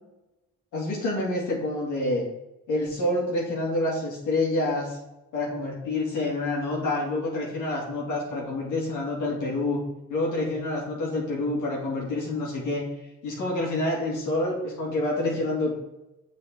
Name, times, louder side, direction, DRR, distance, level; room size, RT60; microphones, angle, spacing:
voice 1, 0.7-2.2 2.7-5.0 5.3-9.8 10.1-12.9 13.2-15.7, left 2 dB, 85° left, -4 dB, 2.6 m, -27 dB
7.2 x 5.2 x 4.6 m, 0.95 s
cardioid pair, 90°, 30 cm